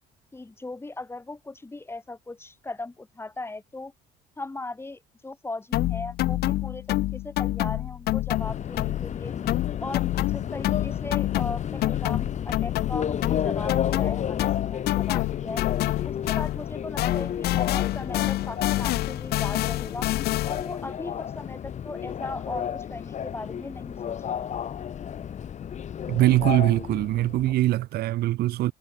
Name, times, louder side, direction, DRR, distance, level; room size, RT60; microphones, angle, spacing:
voice 1, 0.3-3.9 4.4-9.3 9.8-15.6 16.0-20.1 20.4-24.5, left 2 dB, 15° left, 2.7 m, -38 dB
sound 1, 5.7-9.2 9.5-16.7 17.0-20.8, left 16 dB, 70° left, 0.6 m, -27 dB
Subway metro underground, 8.3-27.6, left 8 dB, 45° left, 1.5 m, -32 dB
voice 2, 26.1-28.7, right 15 dB, 70° right, 0.8 m, -22 dB
cardioid pair, 110°, 17 cm